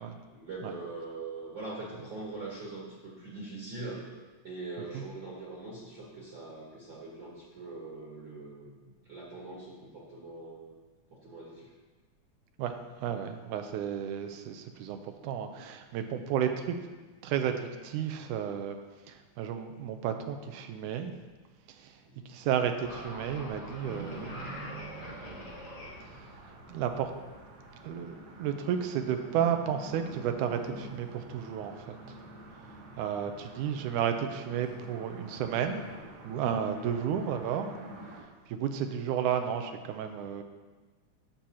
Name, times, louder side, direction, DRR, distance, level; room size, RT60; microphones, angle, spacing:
voice 1, 0.3-4.0 4.4-10.8 11.1-11.7 22.2-22.3, right 3 dB, 45° right, -5 dB, 1.8 m, -42 dB
voice 2, 13.0-16.8 17.2-18.8 19.1-21.1 22.3-25.5 26.7-27.1 27.8-32.2 33.0-35.8 36.2-37.7 38.5-40.4, right 8 dB, 90° right, 6 dB, 2.1 m, -32 dB
sound 1, 22.8-28.2, left 1 dB, 40° left, 1.5 m, -45 dB
sound 2, 23.8-38.2, right 2 dB, 60° right, 2.4 m, -48 dB
11.5 x 7.6 x 2.9 m, 1.3 s
omnidirectional pair, 3.6 m